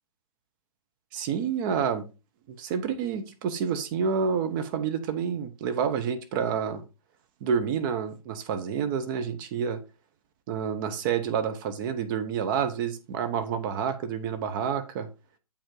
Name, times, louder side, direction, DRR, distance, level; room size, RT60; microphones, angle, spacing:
voice 1, 1.1-2.1 2.5-6.8 7.4-9.8 10.5-15.1, right 7 dB, 35° right, 0.9 m, -29 dB
8.6 x 5.2 x 3.8 m
figure-of-eight pair, 125°, 19 cm